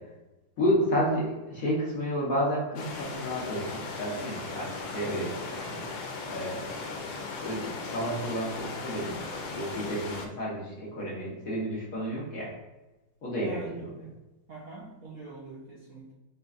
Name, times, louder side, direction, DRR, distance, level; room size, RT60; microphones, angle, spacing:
voice 1, 0.6-5.8 6.3-7.0 7.4-12.5 13.2-14.0, equal, 55° left, -5 dB, 1.1 m, -31 dB
sound 1, 2.8-10.3, left 4 dB, 90° left, 1.4 m, -37 dB
voice 2, 13.4-13.7 14.5-16.1, right 2 dB, 70° right, -6 dB, 0.8 m, -43 dB
4.1 x 3.8 x 2.3 m, 1.1 s
omnidirectional pair, 2.2 m